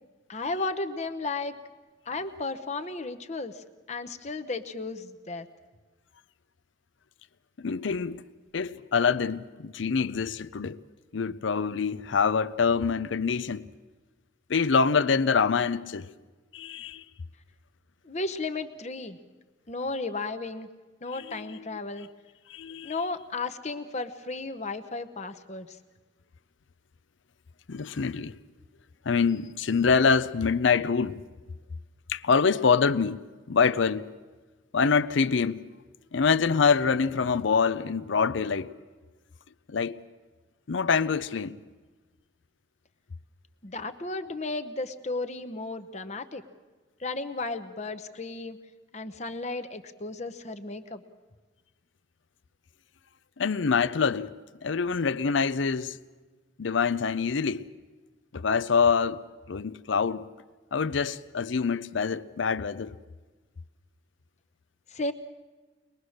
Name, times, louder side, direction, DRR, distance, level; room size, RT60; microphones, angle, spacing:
voice 1, 0.3-1.6 2.1-5.5 18.0-19.2 19.7-20.7 21.0-22.1 22.8-25.8 43.6-46.4 47.0-48.6 48.9-51.0 64.9-65.1, left 3 dB, 35° left, 0.9 m, -34 dB
voice 2, 7.6-8.2 8.5-10.8 11.1-13.6 14.5-16.1 16.5-17.0 21.1-21.8 22.5-23.1 27.7-28.4 29.1-31.2 32.1-33.2 33.5-34.1 34.7-35.6 36.1-38.7 39.7-40.0 40.7-41.6 53.4-54.3 54.6-56.0 56.6-57.6 58.3-60.3 60.7-62.9, left 5 dB, 70° left, 0.6 m, -25 dB
22.5 x 21.0 x 6.5 m
head